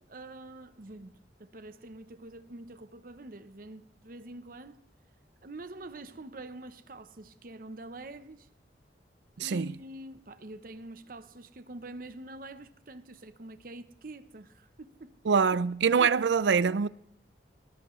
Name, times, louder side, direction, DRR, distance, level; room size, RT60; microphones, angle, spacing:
voice 1, 0.0-4.9 5.4-8.5 9.4-15.4 16.0-16.1, right 2 dB, 50° right, 0.8 m, -46 dB
voice 2, 9.4-9.7 15.3-16.9, right 6 dB, 85° right, 0.5 m, -24 dB
19.0 x 18.5 x 3.2 m
head